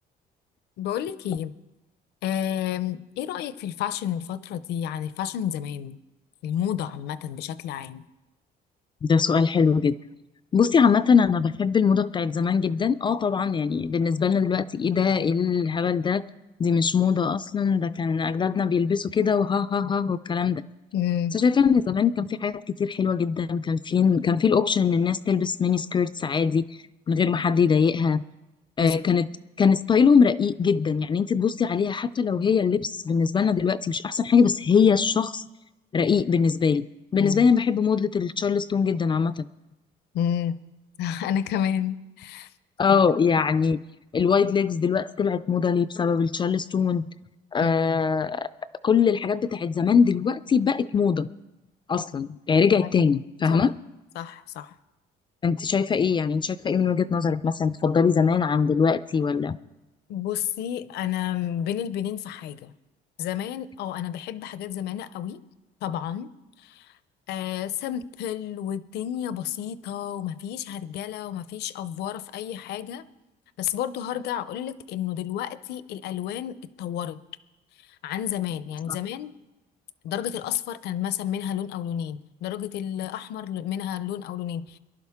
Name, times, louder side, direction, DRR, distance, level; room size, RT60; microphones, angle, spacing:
voice 1, 0.8-1.5 2.2-6.0 6.4-8.0 20.9-21.4 28.8-29.1 37.2-37.5 40.1-40.6 41.0-42.5 42.9-43.0 47.6-48.0 52.8-53.0 53.5-53.6 54.2-54.7 60.1-62.7 63.2-65.4 65.8-66.3 66.6-66.9 67.3-73.0 73.6-77.2 77.8-79.3 80.0-84.8, left 10 dB, 75° left, 15 dB, 0.6 m, -31 dB
voice 2, 9.0-9.9 10.5-16.2 16.6-20.6 21.3-26.7 27.1-28.2 28.8-29.3 29.6-35.4 35.9-36.8 37.1-39.5 42.8-43.8 44.1-47.1 47.5-48.5 48.8-51.3 51.9-53.7 55.4-59.6, left 6 dB, 30° left, 14 dB, 0.4 m, -22 dB
23.0 x 11.5 x 3.6 m, 1.0 s
cardioid pair, 110°, 17 cm